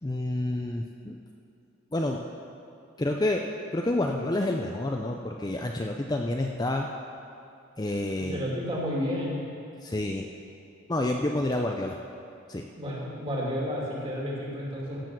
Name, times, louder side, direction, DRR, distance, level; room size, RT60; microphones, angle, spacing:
voice 1, 0.0-1.2 1.9-2.2 3.0-3.4 3.7-6.9 7.8-8.4 9.8-10.3 10.9-12.0 12.5-12.7, left 1 dB, 20° left, 2 dB, 0.5 m, -28 dB
voice 2, 8.3-9.4 12.8-15.0, equal, 25° right, -4 dB, 2.6 m, -31 dB
15.5 x 7.1 x 6.0 m, 2.6 s
head